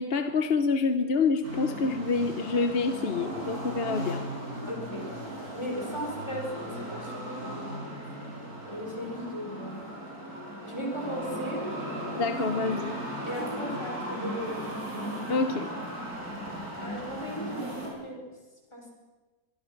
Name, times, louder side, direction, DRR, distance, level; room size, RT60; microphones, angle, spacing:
voice 1, 0.0-4.3 12.1-12.9 15.3-15.7, left 4 dB, 45° left, 9 dB, 1.1 m, -27 dB
sound 1, 1.4-17.9, right 1 dB, 75° right, 7.2 m, -37 dB
voice 2, 4.7-8.0 8.6-9.9 10.6-11.7 13.3-14.6 16.8-18.2 18.7-18.9, equal, 20° left, 0 dB, 5.3 m, -37 dB
24.0 x 22.5 x 6.0 m, 1.2 s
omnidirectional pair, 1.6 m